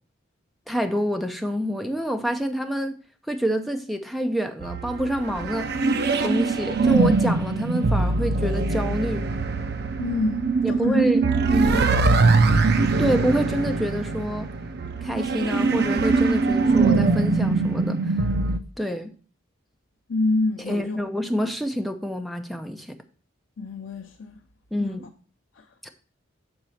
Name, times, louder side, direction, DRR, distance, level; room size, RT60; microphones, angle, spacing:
voice 1, 0.7-3.0 3.3-5.7 6.2-9.3 10.6-11.2 11.5-11.9 13.0-14.5 15.0-18.1 18.8-19.1 20.7-23.0 24.7-25.1 25.8-25.9, equal, ahead, 0.6 m, -27 dB
sound 1, 4.6-18.6, right 3 dB, 55° right, 0.5 m, -22 dB
voice 2, 10.0-11.1 11.7-12.3 20.1-21.0 23.6-24.4 24.8-25.0 25.6-25.7, left 2 dB, 80° left, 0.6 m, -27 dB
7.8 x 4.0 x 5.7 m
head